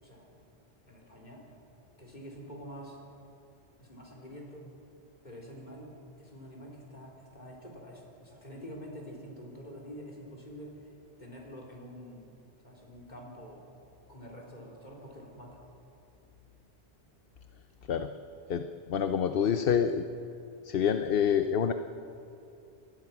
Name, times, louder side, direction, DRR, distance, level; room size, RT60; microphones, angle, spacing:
voice 1, 0.0-0.3 0.9-1.4 2.0-3.0 3.8-4.7 5.2-10.9 11.2-12.3 12.6-13.6 14.1-15.6, equal, 40° left, -1 dB, 4.3 m, -47 dB
voice 2, 18.5-20.0 20.6-21.7, left 8 dB, 60° left, 8 dB, 0.9 m, -27 dB
24.5 x 19.5 x 6.0 m, 2.7 s
omnidirectional pair, 1.1 m